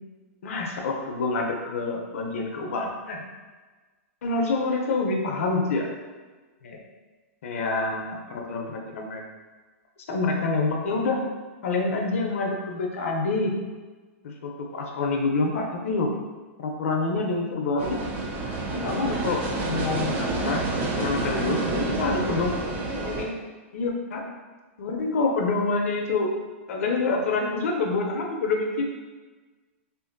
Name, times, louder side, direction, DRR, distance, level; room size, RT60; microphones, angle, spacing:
voice 1, 0.4-3.2 4.2-5.9 6.6-6.8 7.4-9.3 10.1-11.2 11.6-13.5 14.2-16.1 16.6-18.0 18.7-20.6 21.0-22.5 23.0-23.3 23.7-24.2 24.8-26.3 26.7-28.9, left 3 dB, 75° left, 1 dB, 0.5 m, -27 dB
sound 1, 17.8-23.2, right 2 dB, 25° right, 0.4 m, -28 dB
2.6 x 2.5 x 2.5 m, 1.3 s
hypercardioid pair, 145°, 7 cm